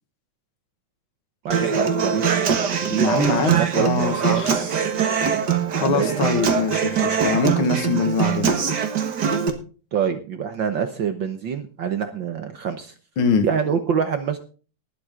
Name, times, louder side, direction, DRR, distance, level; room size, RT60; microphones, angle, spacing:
voice 1, 1.4-2.6 2.9-4.4 5.9-6.3 9.9-12.9 13.4-14.4, right 7 dB, 70° right, 8 dB, 1.1 m, -26 dB
Human voice / Acoustic guitar, 1.5-9.5, right 7 dB, 45° right, 1.5 m, -22 dB
voice 2, 2.9-4.7 5.7-8.8 13.2-13.4, left 4 dB, 50° left, 7 dB, 2.0 m, -23 dB
19.5 x 7.9 x 3.7 m, 0.37 s
omnidirectional pair, 3.5 m